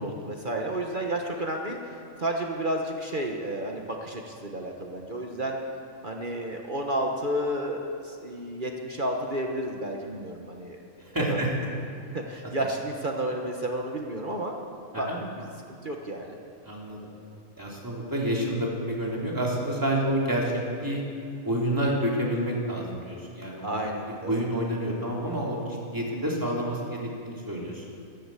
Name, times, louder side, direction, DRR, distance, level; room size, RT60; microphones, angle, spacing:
voice 1, 0.0-1.8 2.2-5.6 6.0-10.8 11.3-11.4 12.1-14.6 15.0-16.4 23.6-24.4, right 1 dB, 35° right, 1 dB, 1.3 m, -31 dB
voice 2, 11.0-11.5 14.9-15.2 16.6-17.0 17.6-20.5 20.8-21.0 21.4-23.9 24.3-27.8, right 1 dB, 15° right, -3 dB, 3.1 m, -29 dB
14.0 x 12.0 x 8.4 m, 2.4 s
omnidirectional pair, 1.5 m